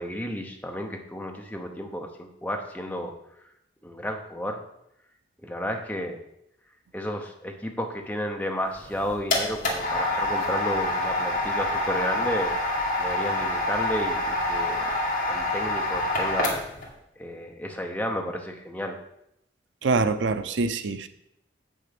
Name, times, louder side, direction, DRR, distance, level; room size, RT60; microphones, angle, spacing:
voice 1, 0.0-3.1 3.8-4.6 5.4-6.2 6.9-12.5 13.0-14.9 15.3-16.6 17.2-19.0, equal, 10° left, 2 dB, 0.9 m, -32 dB
sound 1, 8.8-16.9, left 1 dB, 50° left, 2.2 m, -27 dB
voice 2, 19.8-21.1, right 3 dB, 75° right, 11 dB, 0.6 m, -25 dB
7.6 x 6.5 x 5.9 m, 0.79 s
head